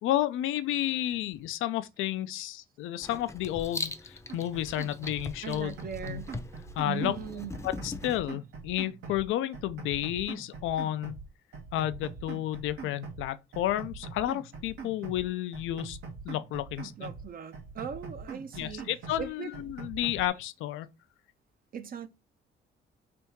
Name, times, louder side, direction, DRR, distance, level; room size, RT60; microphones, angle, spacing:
voice 1, 0.0-5.7 6.1-6.2 6.8-7.1 7.6-11.2 11.7-16.0 16.2-17.1 18.6-20.9, left 13 dB, 90° left, 0.5 m, -31 dB
Writing, 3.0-8.2, left 3 dB, 15° left, 0.6 m, -40 dB
sound 1, 4.3-5.3 5.5-7.3 7.5-9.3 9.5-11.3 11.5-13.3 13.5-15.3 15.5-17.3 17.5-19.3 19.5-20.3, right 5 dB, 80° right, 1.3 m, -43 dB
voice 2, 5.4-6.3 6.8-7.5 17.0-18.9 19.2-19.5 21.7-22.1, right 8 dB, 45° right, 0.6 m, -39 dB
3.4 x 2.7 x 4.4 m
cardioid pair, 90°, 20 cm